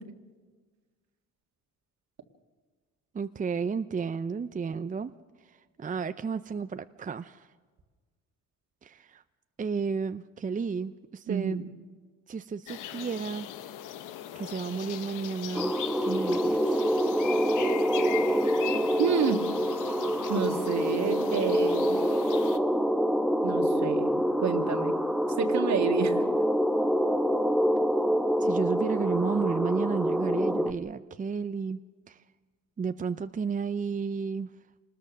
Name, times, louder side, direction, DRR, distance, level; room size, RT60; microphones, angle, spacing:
voice 1, 3.1-5.1 5.5-7.5 8.8-9.2 9.6-11.6 12.3-13.5 14.3-15.7 16.0-16.8 28.4-31.8 32.1-32.2 32.8-34.5, right 5 dB, 25° right, 11 dB, 0.6 m, -32 dB
voice 2, 11.3-11.7 19.0-19.4 20.3-22.0 23.4-25.0 25.4-26.2, right 7 dB, 65° right, 6 dB, 2.0 m, -29 dB
sound 1, 12.7-22.6, left 11 dB, 90° left, 1.1 m, -39 dB
sound 2, 15.5-30.7, equal, ahead, 1.0 m, -26 dB
26.0 x 20.0 x 6.4 m, 1.4 s
cardioid pair, 90°, 30 cm